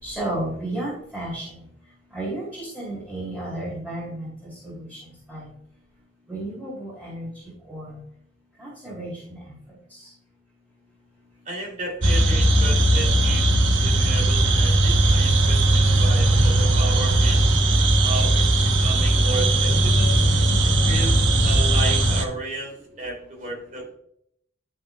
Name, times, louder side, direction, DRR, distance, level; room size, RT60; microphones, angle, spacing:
voice 1, 0.0-1.5 2.1-5.0 5.3-5.5 6.3-7.3 7.7-8.0 8.6-9.4, right 1 dB, 5° right, -8 dB, 2.6 m, -32 dB
voice 2, 11.5-13.5 13.8-17.4 18.0-18.5 18.8-20.1 20.8-23.9, right 2 dB, 40° right, 0 dB, 2.7 m, -33 dB
sound 1, 12.0-22.3, right 1 dB, 90° right, 1.0 m, -18 dB
11.5 x 5.9 x 2.2 m, 0.70 s
head